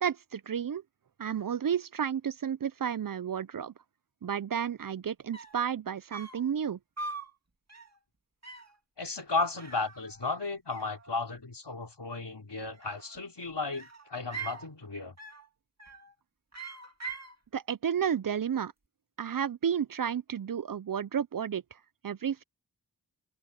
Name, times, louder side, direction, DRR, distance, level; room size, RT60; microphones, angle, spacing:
voice 1, 0.0-0.8 1.2-3.7 4.2-6.8 17.5-18.7 19.2-21.6 22.0-22.4, right 8 dB, 55° right, 0.5 m, -31 dB
sound 1, 5.0-5.1 5.3-5.7 6.1-6.5 7.0-7.3 7.7-8.0 8.4-8.8 9.6-10.4 10.7-11.4 12.6-13.3 13.7-14.7 15.2-15.5 15.8-16.2 16.5-17.4, right 4 dB, 40° right, 2.4 m, -43 dB
voice 2, 9.0-15.2, left 3 dB, 80° left, 4.1 m, -34 dB
wide cardioid pair, 55°, 41 cm